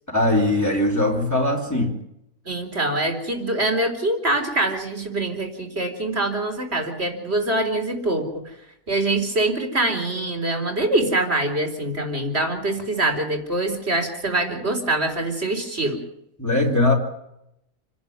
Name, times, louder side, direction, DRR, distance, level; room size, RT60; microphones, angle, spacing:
voice 1, 0.1-2.0 16.4-16.9, left 2 dB, 10° left, 0 dB, 3.7 m, -20 dB
voice 2, 2.5-8.6 8.9-16.0, right 2 dB, 50° right, 5 dB, 4.4 m, -24 dB
29.0 x 11.5 x 9.5 m, 0.79 s
omnidirectional pair, 1.4 m